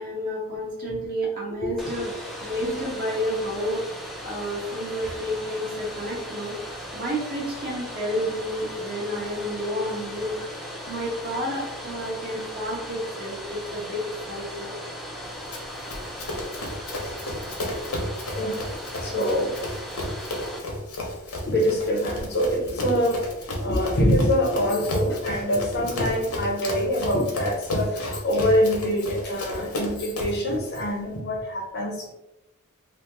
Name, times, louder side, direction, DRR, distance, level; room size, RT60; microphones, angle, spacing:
voice 1, 0.0-2.1 2.4-3.8 4.2-6.5 6.9-14.0 14.3-14.7, equal, 40° right, -5 dB, 1.1 m, -30 dB
Domestic sounds home sounds, 1.8-20.6, equal, ahead, 0.4 m, -37 dB
Run, 15.5-30.5, left 1 dB, 80° left, 0.8 m, -32 dB
voice 2, 19.0-19.6 21.4-32.1, equal, 50° left, 1 dB, 0.6 m, -25 dB
2.9 x 2.1 x 3.3 m, 0.92 s
head